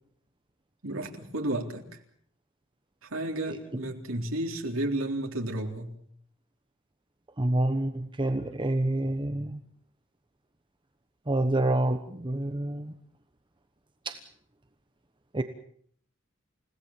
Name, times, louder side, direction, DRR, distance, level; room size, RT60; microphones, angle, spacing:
voice 1, 0.8-2.0 3.0-6.0, right 1 dB, 80° right, 3 dB, 3.8 m, -32 dB
voice 2, 7.4-9.6 11.3-12.9 14.0-14.2 15.3-15.4, right 1 dB, 25° right, 8 dB, 1.1 m, -27 dB
29.0 x 17.5 x 7.4 m, 0.62 s
head